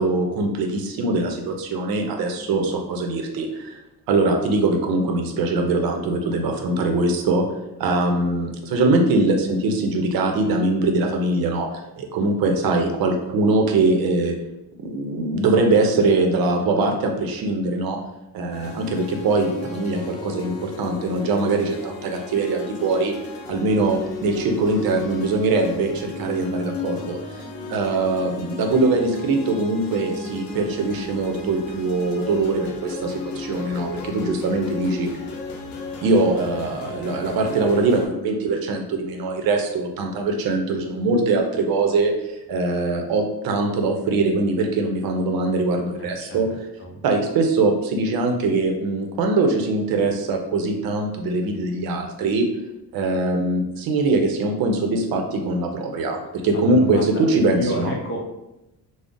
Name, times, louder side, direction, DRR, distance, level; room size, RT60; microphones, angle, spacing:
voice 1, 0.0-3.8 4.1-7.4 7.8-11.7 12.0-14.3 14.8-18.0 18.3-23.1 23.5-27.4 27.7-35.1 36.0-42.1 42.5-46.5 47.0-52.5 52.9-57.9, right 3 dB, 80° right, 3 dB, 0.6 m, -22 dB
sound 1, 18.5-38.1, left 3 dB, 85° left, 0.6 m, -35 dB
voice 2, 46.0-47.0 56.5-57.0 57.3-58.2, equal, 35° left, -1 dB, 0.6 m, -31 dB
2.4 x 2.0 x 3.6 m, 0.94 s
cardioid pair, 150°, 35 cm